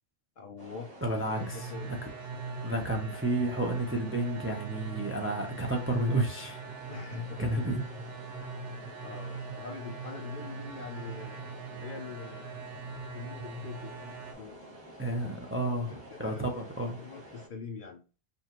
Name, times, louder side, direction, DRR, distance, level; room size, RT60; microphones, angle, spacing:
voice 1, 0.4-0.9 1.2-2.5 6.9-7.5 8.7-11.4 11.8-12.6 13.1-14.1 14.4-14.7 15.9-16.6 16.9-18.0, left 5 dB, 55° left, 0.7 m, -44 dB
sound 1, 0.6-17.5, right 1 dB, 30° right, 1.5 m, -50 dB
voice 2, 1.0-1.7 2.6-6.6 7.4-7.8 15.0-17.0, right 2 dB, 15° right, 0.5 m, -31 dB
sound 2, 1.3-14.3, right 4 dB, 90° right, 1.2 m, -41 dB
5.3 x 2.4 x 3.0 m
omnidirectional pair, 1.2 m